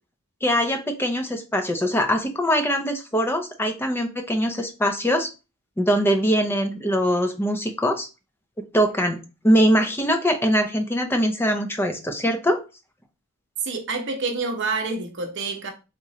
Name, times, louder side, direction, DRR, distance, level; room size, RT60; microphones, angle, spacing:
voice 1, 0.4-5.3 5.8-8.1 8.7-9.2 9.4-12.6, equal, 10° left, 0.5 m, -22 dB
voice 2, 13.6-15.7, right 3 dB, 55° right, 0.8 m, -27 dB
3.6 x 3.0 x 2.8 m
head